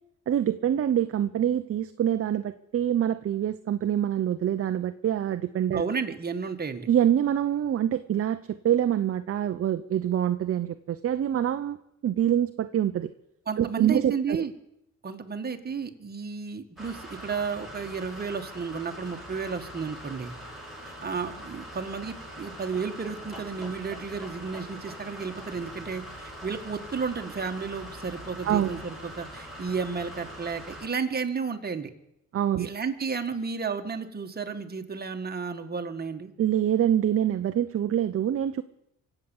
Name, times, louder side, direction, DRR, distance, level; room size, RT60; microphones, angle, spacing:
voice 1, 0.3-5.8 6.9-11.8 12.0-13.1 13.6-14.4 28.4-28.7 32.3-32.7 36.4-38.6, right 10 dB, 50° right, 10 dB, 0.8 m, -25 dB
voice 2, 5.7-6.9 13.5-14.5 15.0-20.3 20.9-31.9 32.6-36.3, right 5 dB, 30° right, 5 dB, 1.8 m, -32 dB
sound 1, 16.8-30.9, equal, ahead, 6.2 m, -42 dB
24.5 x 8.2 x 7.2 m, 0.83 s
cardioid pair, 90°, 30 cm